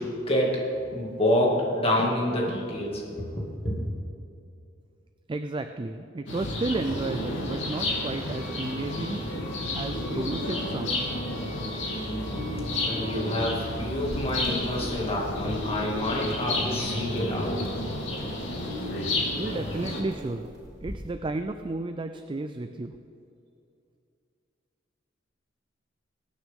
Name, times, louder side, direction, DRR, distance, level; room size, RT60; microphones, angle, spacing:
voice 1, 0.0-3.8 12.6-18.2, left 1 dB, 30° left, -2 dB, 2.3 m, -28 dB
voice 2, 5.3-9.2 9.7-11.1 19.3-20.5 20.8-22.9, right 2 dB, 25° right, 8 dB, 0.4 m, -32 dB
sound 1, 6.3-20.0, left 1 dB, 70° left, 2.8 m, -31 dB
Wind instrument woodwind instrument, 8.3-13.2, left 1 dB, 5° right, 3.1 m, -49 dB
sound 2, 14.1-21.1, equal, 60° right, 3.4 m, -45 dB
22.0 x 9.0 x 3.7 m, 2.5 s
head